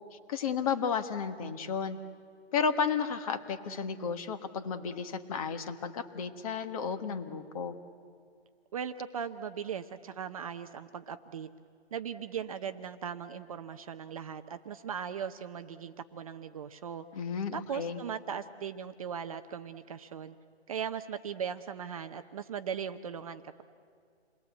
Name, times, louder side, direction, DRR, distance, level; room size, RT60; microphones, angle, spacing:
voice 1, 0.1-2.0 2.5-7.8 17.1-18.0, left 6 dB, 30° left, 8 dB, 1.4 m, -33 dB
voice 2, 8.7-11.5 11.9-17.0 17.5-20.4 20.7-23.6, right 7 dB, 30° right, 9 dB, 0.7 m, -38 dB
28.5 x 21.0 x 8.2 m, 2.2 s
hypercardioid pair, 160°, 33 cm